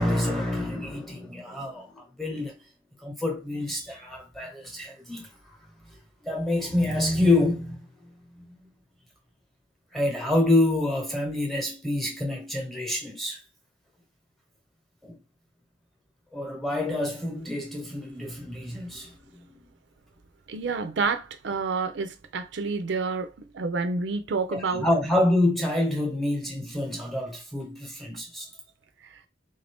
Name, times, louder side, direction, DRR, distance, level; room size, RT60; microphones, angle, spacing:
voice 1, 0.0-2.6 3.0-5.3 6.2-7.8 9.9-13.4 15.0-15.2 16.3-19.6 24.5-28.5, left 1 dB, ahead, 1.0 m, -27 dB
voice 2, 20.5-24.8, right 4 dB, 70° right, 0.5 m, -29 dB
3.8 x 2.6 x 3.4 m
head